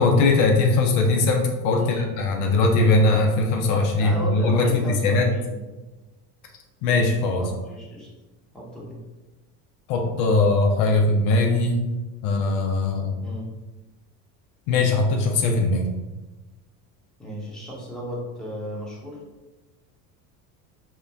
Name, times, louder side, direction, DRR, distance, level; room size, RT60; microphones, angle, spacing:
voice 1, 0.0-5.2 6.8-7.4 9.9-11.8 12.2-13.2 14.7-15.9, left 3 dB, 70° left, 2 dB, 0.6 m, -20 dB
voice 2, 1.8-2.2 4.0-5.6 7.4-8.1 8.5-9.0 13.2-13.5 17.2-19.2, equal, ahead, -6 dB, 0.8 m, -34 dB
2.9 x 2.2 x 2.3 m, 1.1 s
supercardioid pair, 90°, 46 cm